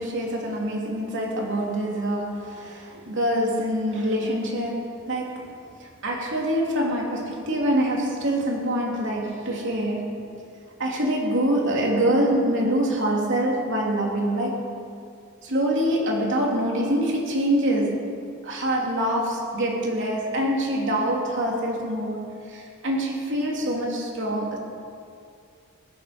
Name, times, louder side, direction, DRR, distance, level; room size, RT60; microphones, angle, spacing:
voice 1, 0.0-10.3 10.8-14.7 15.4-18.2 18.4-24.6, right 1 dB, 60° right, -1 dB, 3.1 m, -25 dB
18.0 x 14.5 x 5.2 m, 2.4 s
head